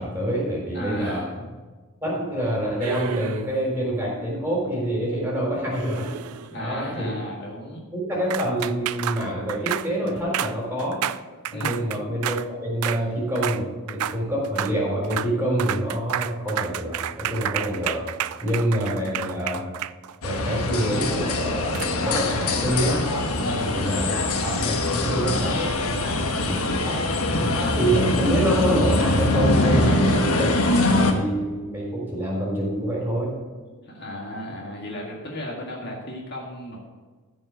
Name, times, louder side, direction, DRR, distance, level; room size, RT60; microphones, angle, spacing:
voice 1, 0.0-1.3 2.0-6.1 6.5-7.2 7.9-11.0 11.5-18.1 18.4-19.6 20.2-23.0 23.6-24.1 24.4-25.7 26.4-27.0 27.3-30.5 30.9-33.3, right 1 dB, 10° right, -4 dB, 3.9 m, -26 dB
voice 2, 0.7-1.4 6.5-7.8 11.5-11.8 18.3-18.5 23.4-23.9 29.7-30.0 33.7-36.8, equal, 50° left, -2 dB, 1.8 m, -35 dB
sound 1, 2.8-3.7 5.7-6.6 8.3-12.5 12.8-13.0 13.4-13.6 13.9-14.2 14.4-14.8 15.0-15.3 15.6-20.4 21.7-21.9, right 11 dB, 80° right, 0.4 m, -31 dB
sound 2, 20.2-31.1, left 2 dB, 75° left, 1.3 m, -23 dB
14.5 x 5.4 x 6.3 m, 1.3 s
head